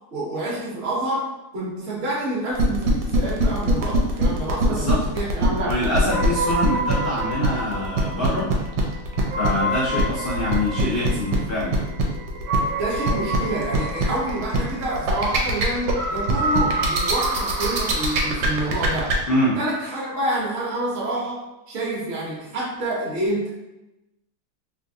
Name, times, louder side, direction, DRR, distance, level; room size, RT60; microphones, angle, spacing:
voice 1, 0.1-5.7 12.8-19.2 19.6-23.6, right 1 dB, 45° right, -5 dB, 0.8 m, -28 dB
sound 1, 2.6-19.1, right 3 dB, 90° right, 1.4 m, -23 dB
voice 2, 4.7-5.0 5.6-8.5 9.4-11.8 19.3-19.6, left 1 dB, 90° left, -9 dB, 0.4 m, -25 dB
sound 2, 6.1-19.1, right 1 dB, 70° right, 1.3 m, -29 dB
3.3 x 2.6 x 2.6 m, 0.96 s
omnidirectional pair, 2.1 m